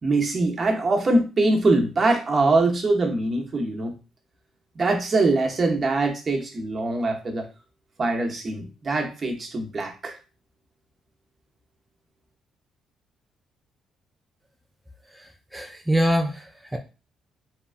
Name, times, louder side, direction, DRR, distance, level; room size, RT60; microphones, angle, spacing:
voice 1, 0.0-3.9 4.8-7.4 8.0-10.2, right 2 dB, 40° right, 2 dB, 0.7 m, -23 dB
voice 2, 15.1-16.8, equal, 5° right, 2 dB, 0.3 m, -25 dB
2.9 x 2.3 x 2.4 m, 0.31 s
cardioid pair, 90°, 0 cm